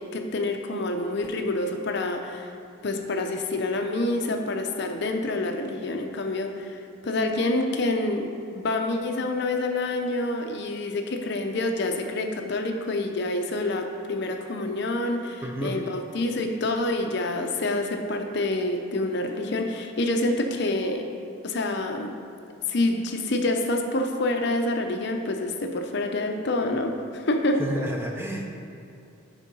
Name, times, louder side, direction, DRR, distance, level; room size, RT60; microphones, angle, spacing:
voice 1, 0.0-2.5 2.8-21.0 21.4-22.1 22.7-27.6, left 2 dB, 55° left, 4 dB, 0.6 m, -27 dB
voice 2, 15.4-15.8 27.6-28.5, right 1 dB, 10° right, 0 dB, 0.6 m, -30 dB
9.9 x 3.7 x 5.3 m, 2.5 s
head